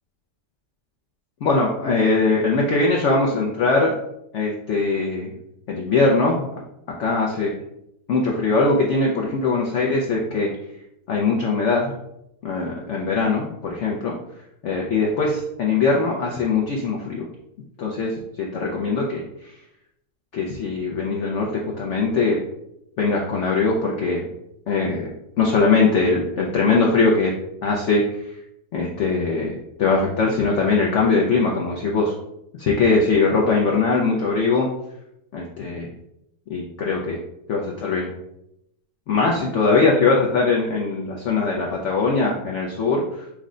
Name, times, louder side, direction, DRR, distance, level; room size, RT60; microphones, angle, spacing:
voice 1, 1.4-3.9 4.3-5.3 5.7-6.5 7.0-7.5 8.1-10.5 11.1-11.9 12.4-14.1 14.6-17.3 17.8-19.6 20.3-21.5 21.8-22.4 23.0-24.3 24.7-25.1 25.4-27.3 27.6-28.3 28.7-29.5 29.8-32.1 32.6-34.7 35.3-35.9 36.5-37.2 37.5-38.1 39.1-43.2, left 3 dB, 60° left, -1 dB, 0.8 m, -21 dB
6.0 x 2.1 x 3.7 m, 0.82 s
omnidirectional pair, 1.7 m